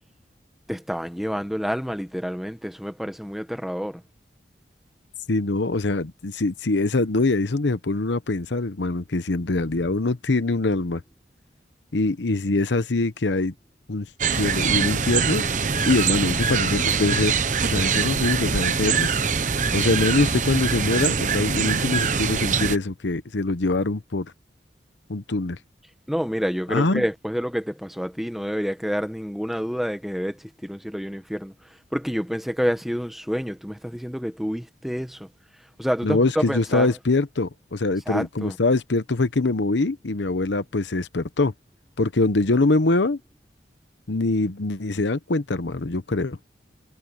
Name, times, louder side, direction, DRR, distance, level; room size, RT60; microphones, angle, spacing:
voice 1, 0.7-4.0 26.1-35.3 35.8-36.9 38.1-38.6, equal, ahead, 1.3 m, -28 dB
voice 2, 5.3-11.0 11.9-13.5 13.9-14.1 14.3-15.4 15.9-17.4 17.6-19.1 19.7-24.3 25.1-25.6 26.7-27.0 36.0-41.5 42.0-43.2 44.1-46.4, left 2 dB, 85° left, 0.9 m, -23 dB
sound 1, 14.2-22.8, right 5 dB, 45° right, 0.9 m, -23 dB
head